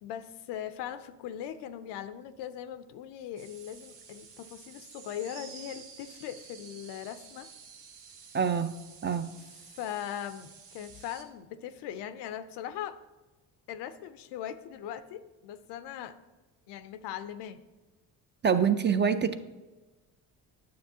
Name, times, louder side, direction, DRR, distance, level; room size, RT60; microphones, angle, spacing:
voice 1, 0.0-7.5 9.7-13.0 13.7-16.2 16.7-17.6, left 10 dB, 80° left, 13 dB, 0.6 m, -40 dB
sound 1, 3.4-11.2, right 6 dB, 85° right, 1.1 m, -51 dB
voice 2, 8.3-8.7 9.0-9.3 18.4-19.4, right 7 dB, 30° right, 10 dB, 0.4 m, -25 dB
9.4 x 7.3 x 2.7 m, 1.2 s
supercardioid pair, 75°, 41 cm